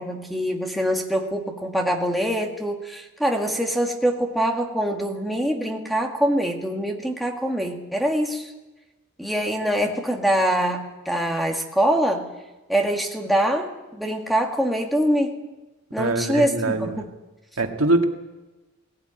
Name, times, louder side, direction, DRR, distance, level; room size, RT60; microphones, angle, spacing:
voice 1, 0.0-8.5 9.2-12.3 12.7-15.4 15.9-17.1, equal, ahead, 2 dB, 2.1 m, -24 dB
voice 2, 16.0-17.0 17.6-18.0, right 2 dB, 85° right, 4 dB, 2.0 m, -23 dB
18.5 x 17.5 x 9.0 m, 1.1 s
head